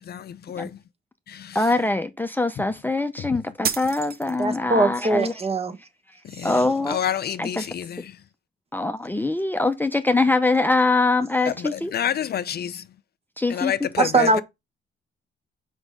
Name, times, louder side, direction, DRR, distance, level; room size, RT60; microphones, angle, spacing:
voice 1, 0.1-0.7 6.4-6.5 6.9-7.8 11.9-12.7 13.5-14.3, left 10 dB, 55° left, 0.5 m, -27 dB
voice 2, 1.5-5.3 6.4-7.0 7.4-7.7 8.7-11.9 13.4-14.1, left 2 dB, 10° left, 0.7 m, -23 dB
sound 1, 3.6-4.7, right 7 dB, 50° right, 1.0 m, -30 dB
voice 3, 4.4-5.8 7.6-7.7 14.0-14.4, right 3 dB, 30° right, 1.3 m, -21 dB
6.0 x 5.5 x 5.0 m
cardioid pair, 90°, 20 cm